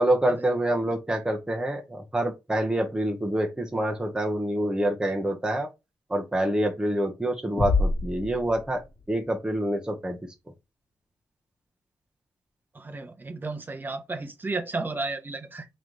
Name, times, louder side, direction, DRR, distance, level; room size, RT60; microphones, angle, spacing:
voice 1, 0.0-5.7 6.1-8.8 9.1-10.2, right 1 dB, 10° right, 1.2 m, -26 dB
sound 1, 7.6-9.3, left 3 dB, 25° left, 1.9 m, -27 dB
voice 2, 12.7-15.7, right 3 dB, 25° right, 0.9 m, -33 dB
3.2 x 3.1 x 4.0 m
cardioid pair, 75°, 7 cm